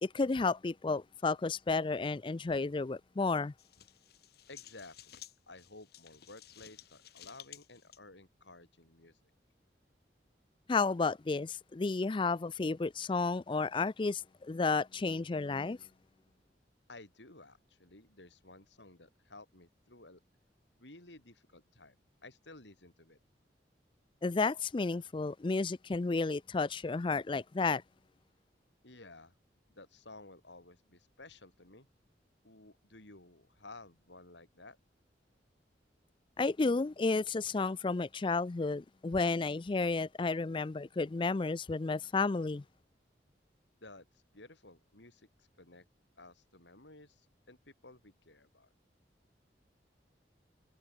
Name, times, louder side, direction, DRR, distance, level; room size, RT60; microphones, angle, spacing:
voice 1, 0.0-3.5 10.7-15.8 24.2-27.8 36.4-42.6, left 3 dB, 30° left, 0.4 m, -32 dB
sound 1, 3.6-8.0, left 11 dB, 60° left, 2.9 m, -55 dB
voice 2, 4.5-5.2 5.5-9.3 16.9-20.2 20.8-23.2 28.8-29.3 29.7-31.9 32.4-34.8 43.8-45.8 46.2-48.7, left 2 dB, 80° left, 5.8 m, -54 dB
head